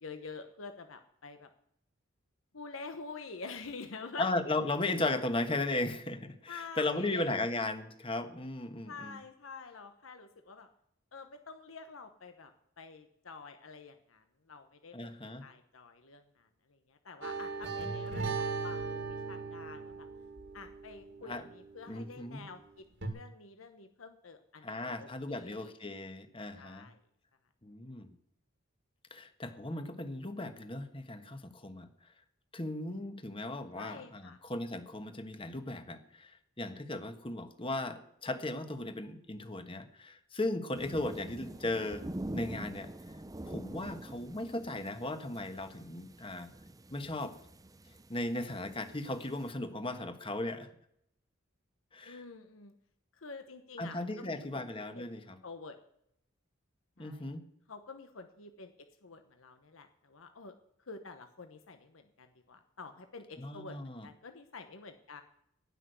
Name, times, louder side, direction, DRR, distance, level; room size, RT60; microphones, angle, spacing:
voice 1, 0.0-1.5 2.5-4.3 6.5-7.3 8.9-10.7 11.1-12.5 12.8-15.1 15.4-20.1 20.5-22.8 23.1-25.7 26.6-27.0 33.7-34.4 41.5-41.6 52.0-52.7 53.1-54.6 54.9-55.8 57.0-57.2 57.7-58.7 59.0-60.5 60.9-65.2, left 4 dB, 85° left, 7 dB, 1.0 m, -48 dB
voice 2, 4.2-9.2 14.9-15.4 21.2-21.4 21.9-22.4 24.6-26.9 27.6-28.1 29.1-31.9 32.5-42.1 42.3-42.9 43.4-46.5 46.9-47.3 48.1-50.7 51.9-52.2 53.8-55.4 57.0-57.4 63.4-64.1, left 2 dB, 25° left, 8 dB, 1.3 m, -36 dB
sound 1, 17.2-22.1 23.0-23.1, right 4 dB, 65° right, 2.3 m, -38 dB
sound 2, 40.7-49.5, right 1 dB, 20° right, 0.6 m, -45 dB
17.5 x 6.1 x 8.1 m, 0.73 s
head